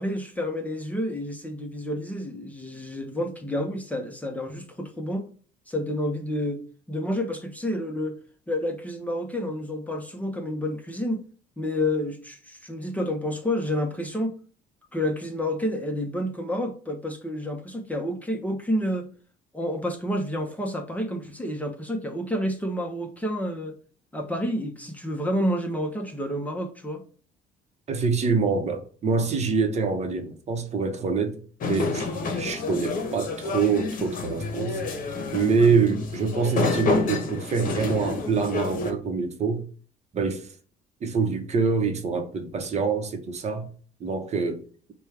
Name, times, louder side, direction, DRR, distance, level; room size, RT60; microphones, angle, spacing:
voice 1, 0.0-5.3 5.7-6.6 6.9-8.2 8.5-11.2 11.6-14.3 14.9-19.1 19.5-23.7 24.1-27.0, left 1 dB, 10° left, 0.8 m, -29 dB
voice 2, 27.9-31.4 31.7-34.8 35.3-39.6 40.1-40.5 41.0-43.7 44.0-44.6, right 5 dB, 40° right, 0.8 m, -25 dB
sound 1, 31.6-38.9, left 3 dB, 55° left, 1.0 m, -29 dB
5.0 x 2.3 x 4.5 m
cardioid pair, 110°, 17 cm